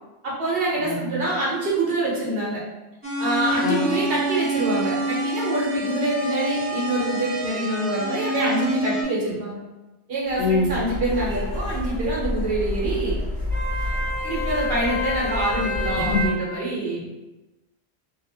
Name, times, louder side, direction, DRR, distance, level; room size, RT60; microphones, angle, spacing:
voice 1, 0.2-2.6 3.2-9.6 10.1-13.1 14.2-17.1, right 2 dB, 60° right, -5 dB, 1.0 m, -25 dB
voice 2, 0.8-1.2 3.6-4.0 10.4-10.8 16.0-16.3, left 3 dB, 85° left, -1 dB, 0.9 m, -24 dB
sound 1, 3.0-9.0, equal, 15° right, 0.4 m, -27 dB
sound 2, 10.3-16.3, left 1 dB, ahead, 1.0 m, -27 dB
2.8 x 2.0 x 2.7 m, 1.1 s
omnidirectional pair, 1.1 m